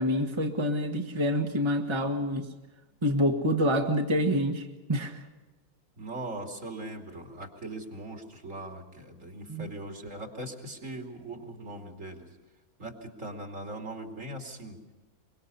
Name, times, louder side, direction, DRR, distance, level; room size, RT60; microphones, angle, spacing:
voice 1, 0.0-2.5 3.0-5.2 9.5-9.7, equal, 20° right, 3 dB, 1.4 m, -27 dB
voice 2, 6.0-12.3 12.8-14.8, right 1 dB, 60° right, 3 dB, 3.2 m, -40 dB
24.0 x 22.5 x 5.6 m, 1.2 s
omnidirectional pair, 1.5 m